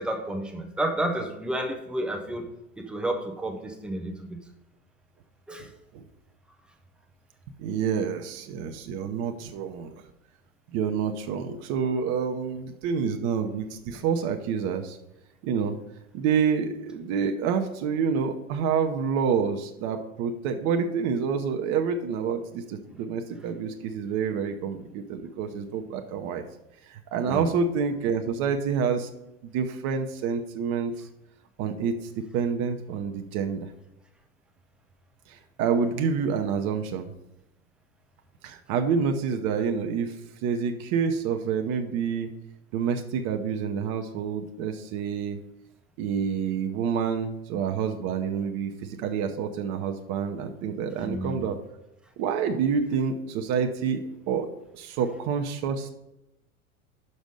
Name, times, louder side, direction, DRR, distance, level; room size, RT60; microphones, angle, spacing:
voice 1, 0.0-2.5 2.8-4.4 5.5-5.7 27.2-27.4 51.0-51.4, right 1 dB, 5° right, 4 dB, 0.3 m, -31 dB
voice 2, 7.6-9.9 10.7-15.0 15.4-15.8 16.1-26.4 26.9-29.1 29.4-31.1 31.6-32.0 32.3-33.7 35.3-37.1 38.4-40.2 40.4-42.3 42.7-45.4 46.0-51.6 52.2-54.5 54.7-55.9, right 6 dB, 35° right, 5 dB, 0.7 m, -28 dB
6.1 x 5.4 x 6.3 m, 0.87 s
figure-of-eight pair, 90°, 43 cm